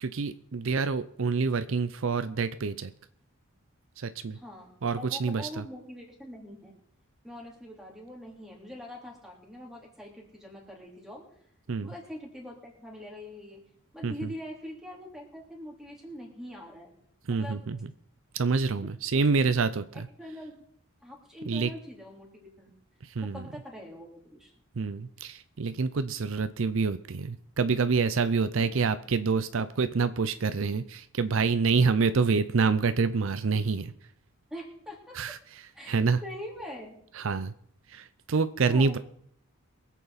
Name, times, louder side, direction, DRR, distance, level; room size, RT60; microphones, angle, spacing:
voice 1, 0.0-2.9 4.0-4.4 4.8-5.6 11.7-11.9 14.0-14.3 17.3-17.8 18.3-20.1 21.5-21.7 23.0-23.5 24.8-33.9 35.1-35.4 35.9-36.2 37.2-37.5 37.9-39.0, right 4 dB, 65° right, 13 dB, 0.5 m, -27 dB
voice 2, 4.3-6.7 7.2-11.3 11.8-13.6 13.9-16.9 17.3-17.6 19.1-19.2 20.2-20.6 21.0-22.7 23.2-24.5 28.6-28.9 32.0-32.1 34.5-35.2 35.7-36.9 38.6-39.0, left 1 dB, ahead, -1 dB, 3.1 m, -43 dB
23.5 x 8.2 x 4.1 m, 0.64 s
head